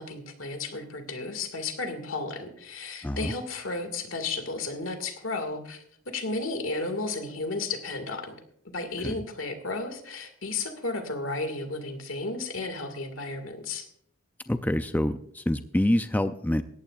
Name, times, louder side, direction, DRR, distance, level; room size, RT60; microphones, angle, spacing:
voice 1, 0.0-8.4 8.7-13.9, left 3 dB, 70° left, 8 dB, 2.1 m, -33 dB
voice 2, 14.5-16.6, left 1 dB, 10° left, 9 dB, 0.4 m, -26 dB
18.0 x 14.0 x 2.5 m, 0.68 s
head